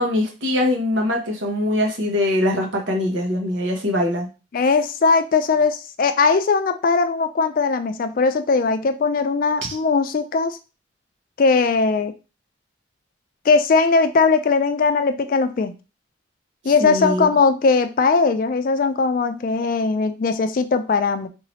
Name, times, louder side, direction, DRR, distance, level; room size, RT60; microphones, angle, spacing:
voice 1, 0.0-4.3 16.8-17.3, left 1 dB, 80° right, 1 dB, 1.1 m, -22 dB
voice 2, 4.5-10.6 11.4-12.1 13.5-15.7 16.6-21.3, left 4 dB, 45° left, 9 dB, 0.3 m, -19 dB
3.7 x 2.8 x 3.1 m, 0.31 s
head